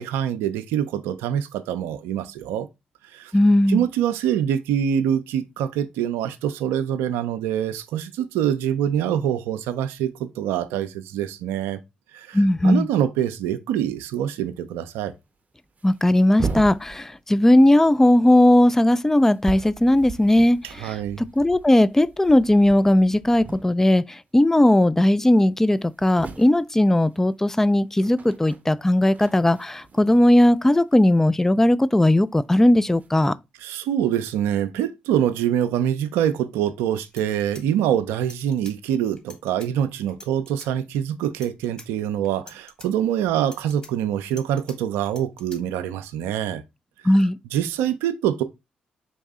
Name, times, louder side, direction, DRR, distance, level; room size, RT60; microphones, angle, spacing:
voice 1, 0.0-2.7 3.1-3.3 3.7-11.8 12.1-15.1 20.8-21.2 33.6-46.6 47.5-48.4, right 10 dB, 80° right, 0.4 m, -25 dB
voice 2, 3.3-3.9 12.3-12.9 15.8-21.0 21.4-33.3 47.0-47.4, left 1 dB, 10° left, 0.3 m, -18 dB
sound 1, 13.9-14.1 14.4-14.5 15.2-15.3 15.6-17.5 17.8-24.1 24.4-24.7 25.1-25.2 25.4-31.7 32.6-33.1, right 4 dB, 40° right, 0.7 m, -38 dB
sound 2, 36.7-36.8 37.0-38.8 39.2-39.7 40.1-40.7 41.2-41.9 42.2-42.9 43.4-44.8 45.1-45.6, left 2 dB, 25° left, 1.7 m, -45 dB
4.0 x 2.6 x 3.6 m
hypercardioid pair, 45°, 4 cm